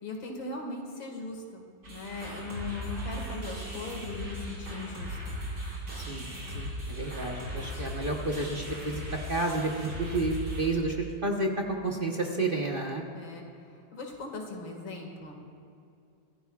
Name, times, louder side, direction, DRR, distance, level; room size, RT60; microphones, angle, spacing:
voice 1, 0.0-5.4 13.1-13.4 13.9-15.4, left 3 dB, 90° left, 1 dB, 2.7 m, -39 dB
sound 1, 1.8-10.7, equal, 70° right, 4.6 m, -38 dB
voice 2, 6.5-9.0 9.3-11.5 11.8-13.0, right 2 dB, 35° right, 0 dB, 1.0 m, -30 dB
24.0 x 15.0 x 2.4 m, 2.5 s
omnidirectional pair, 2.0 m